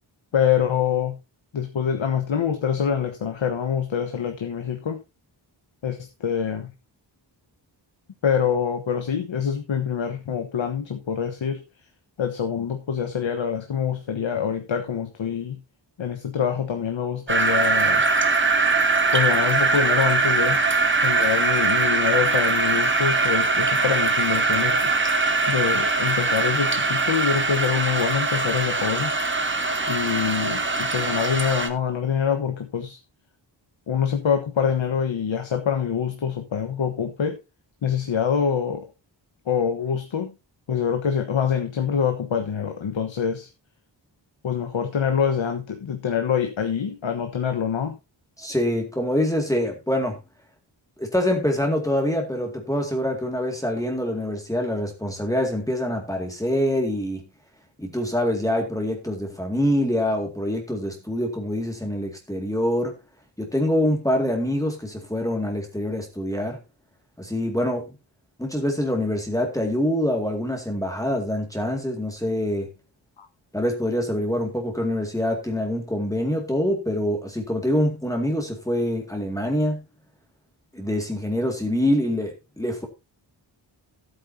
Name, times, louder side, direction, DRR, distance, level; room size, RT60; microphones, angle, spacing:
voice 1, 0.3-1.2 1.5-5.0 5.8-6.7 8.2-11.6 12.2-15.6 16.0-18.1 19.1-20.6 21.0-24.9 25.5-29.1 29.9-33.0 33.9-37.4 37.8-38.9 39.5-40.3 40.7-43.5 44.4-48.0 73.2-73.3, left 7 dB, 80° left, 1.3 m, -25 dB
sound 1, 17.3-31.7, right 3 dB, 25° right, 1.4 m, -22 dB
voice 2, 48.4-50.2 51.0-57.2 57.8-63.0 63.4-66.6 67.2-67.9 68.4-72.7 73.5-79.8 80.7-82.9, left 1 dB, 5° left, 2.2 m, -25 dB
14.5 x 8.7 x 2.8 m
wide cardioid pair, 110°, 45 cm